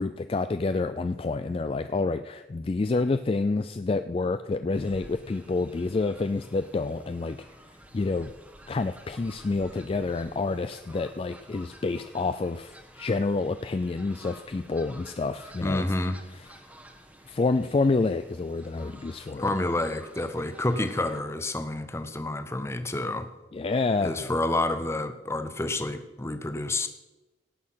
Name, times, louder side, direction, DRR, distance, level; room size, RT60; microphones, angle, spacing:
voice 1, 0.0-7.4 7.9-8.3 8.7-15.8 17.3-19.5 23.5-24.3, left 3 dB, 30° left, 10 dB, 0.3 m, -28 dB
Fowl, 4.7-21.2, right 1 dB, 10° right, 1.1 m, -51 dB
voice 2, 15.6-16.2 19.4-23.3 24.0-26.9, left 2 dB, 15° left, 9 dB, 0.7 m, -29 dB
17.0 x 6.5 x 5.7 m, 1.1 s
head